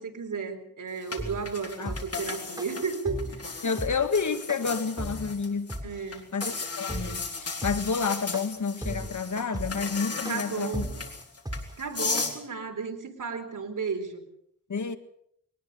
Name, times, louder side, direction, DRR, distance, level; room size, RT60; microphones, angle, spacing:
voice 1, 0.0-3.6 5.8-6.3 10.3-10.9 11.8-14.2, right 5 dB, 65° right, 4.1 m, -34 dB
sound 1, 1.1-5.8 6.1-12.4, left 4 dB, 45° left, 3.9 m, -36 dB
sound 2, 1.2-12.3, right 1 dB, 10° right, 4.4 m, -35 dB
voice 2, 3.6-6.0 6.3-10.9 14.7-15.0, left 5 dB, 60° left, 1.9 m, -30 dB
22.5 x 19.5 x 7.0 m
cardioid pair, 70°, 33 cm